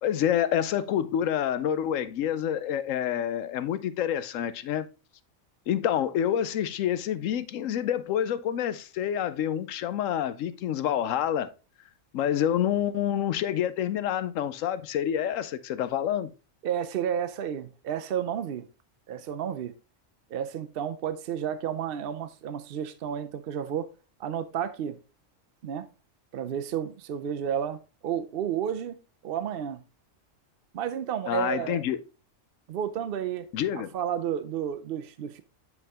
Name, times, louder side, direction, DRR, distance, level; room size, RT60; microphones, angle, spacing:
voice 1, 0.0-4.9 5.7-11.5 12.1-16.3 31.3-32.0 33.5-33.9, left 10 dB, 80° left, 1.0 m, -27 dB
voice 2, 16.6-18.7 19.1-19.7 20.3-23.9 24.2-25.0 25.6-25.9 26.3-29.0 29.2-29.8 30.7-31.8 32.7-33.5 33.7-35.4, right 9 dB, 60° right, 0.6 m, -31 dB
7.8 x 4.7 x 3.5 m
omnidirectional pair, 1.3 m